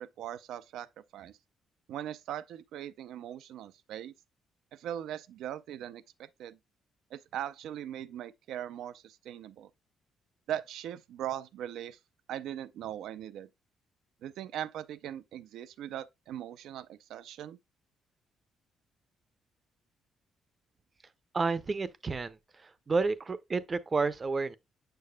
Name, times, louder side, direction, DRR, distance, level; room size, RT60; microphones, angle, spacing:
voice 1, 0.0-1.4 1.9-4.1 4.7-6.6 7.1-9.7 10.5-12.0 12.3-13.5 14.2-17.6, right 11 dB, 80° right, 0.4 m, -40 dB
voice 2, 21.3-24.6, right 4 dB, 35° right, 0.6 m, -31 dB
6.8 x 6.3 x 2.2 m
cardioid pair, 90°, 0 cm